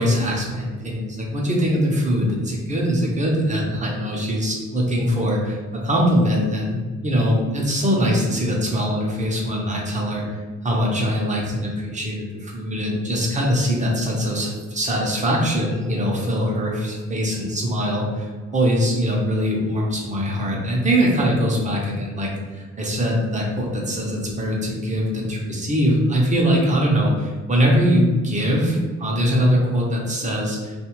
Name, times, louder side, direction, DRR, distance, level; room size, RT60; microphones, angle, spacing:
voice 1, 0.0-30.7, equal, 25° right, -2 dB, 0.8 m, -22 dB
2.6 x 2.5 x 3.0 m, 1.4 s
cardioid pair, 90°, 30 cm